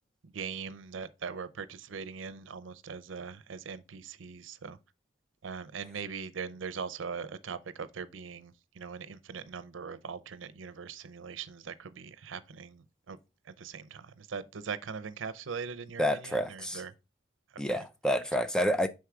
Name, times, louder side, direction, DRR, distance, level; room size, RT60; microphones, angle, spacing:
voice 1, 0.2-4.8 5.4-13.2 13.5-16.9, right 5 dB, 85° right, 0.6 m, -41 dB
voice 2, 16.0-16.8 17.6-18.9, equal, 5° left, 0.4 m, -29 dB
6.4 x 4.6 x 3.5 m
head